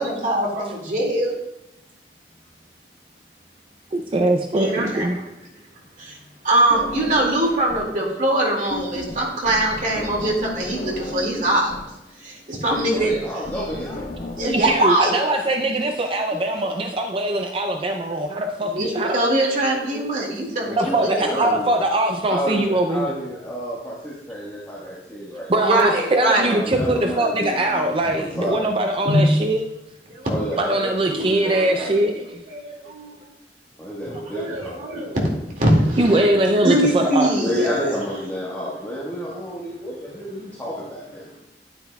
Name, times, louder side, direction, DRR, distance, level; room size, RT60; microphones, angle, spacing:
voice 1, 0.0-1.3 4.5-5.2 6.0-6.2 6.4-11.7 12.2-13.1 14.4-15.1 18.6-21.5 25.6-26.8 29.0-29.2 30.1-30.7 31.1-32.0 32.5-33.3 34.3-35.2 35.5-38.0, right 1 dB, 45° right, -1 dB, 2.1 m, -22 dB
voice 2, 3.9-5.2 14.5-19.2 20.8-23.1 25.5-29.6 30.6-32.3 36.0-37.3, right 1 dB, 30° right, 4 dB, 0.4 m, -22 dB
sound 1, 6.7-8.0 8.2-14.7, left 1 dB, 45° left, 1.4 m, -34 dB
voice 3, 12.6-14.0 16.3-16.8 20.6-21.7 22.3-25.6 26.4-28.7 30.3-32.1 33.8-35.1 37.4-41.4, equal, 10° left, -7 dB, 1.4 m, -30 dB
9.4 x 9.0 x 2.3 m, 0.91 s
head